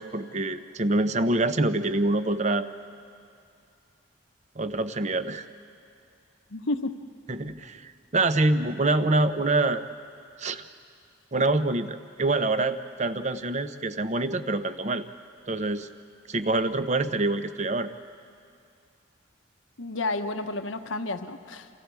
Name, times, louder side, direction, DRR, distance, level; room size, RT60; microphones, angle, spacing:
voice 1, 0.0-2.7 4.6-5.5 7.3-9.8 10.4-10.6 11.3-15.0 15.5-15.9 16.3-17.9, right 2 dB, 35° right, 10 dB, 0.8 m, -26 dB
voice 2, 6.5-6.9 19.8-21.7, left 2 dB, 85° left, 7 dB, 1.2 m, -31 dB
29.0 x 28.5 x 4.8 m, 2.4 s
head